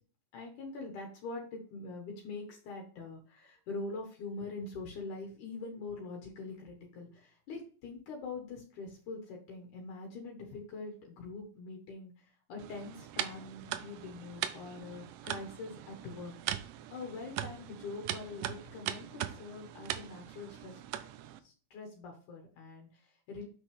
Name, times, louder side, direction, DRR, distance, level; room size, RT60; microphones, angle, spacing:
voice 1, 0.3-16.6 16.9-20.8 21.4-23.5, left 3 dB, 75° left, 1 dB, 2.9 m, -44 dB
sound 1, 12.6-21.4, right 12 dB, 90° right, 2.2 m, -40 dB
7.9 x 6.0 x 3.5 m, 0.41 s
omnidirectional pair, 3.6 m